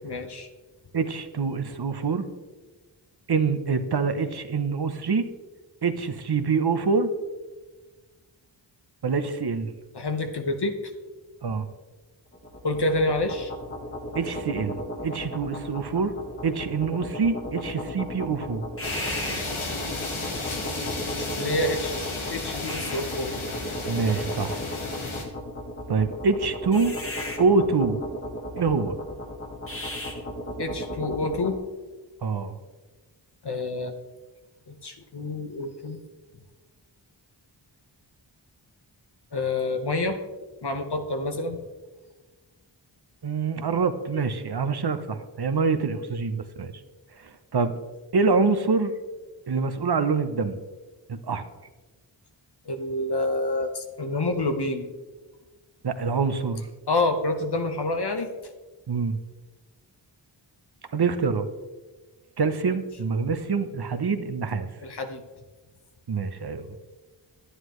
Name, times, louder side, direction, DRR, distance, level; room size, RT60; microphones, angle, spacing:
voice 1, 0.0-0.5 9.9-10.8 12.6-13.5 21.3-21.9 22.3-23.3 30.6-31.6 33.4-33.9 34.7-36.0 39.3-40.2 40.6-41.6 52.6-54.9 56.9-58.3 64.8-65.2, left 2 dB, 55° left, 6 dB, 1.2 m, -27 dB
voice 2, 0.9-2.2 3.3-5.2 5.8-7.1 9.0-9.7 11.4-11.7 14.1-14.8 15.0-16.1 16.4-18.7 23.9-24.6 25.9-26.9 27.4-28.0 28.6-29.0 32.2-32.5 43.2-46.7 47.2-47.7 48.1-48.9 49.5-50.6 51.1-51.4 55.8-56.7 58.9-59.2 60.9-61.5 62.4-64.7 66.1-66.7, right 4 dB, 55° right, 10 dB, 0.8 m, -25 dB
sound 1, 12.3-31.6, left 1 dB, 25° left, 1.7 m, -35 dB
sound 2, 18.8-25.2, left 2 dB, 85° left, 1.6 m, -33 dB
11.0 x 9.7 x 3.1 m, 1.3 s
wide cardioid pair, 50°, 48 cm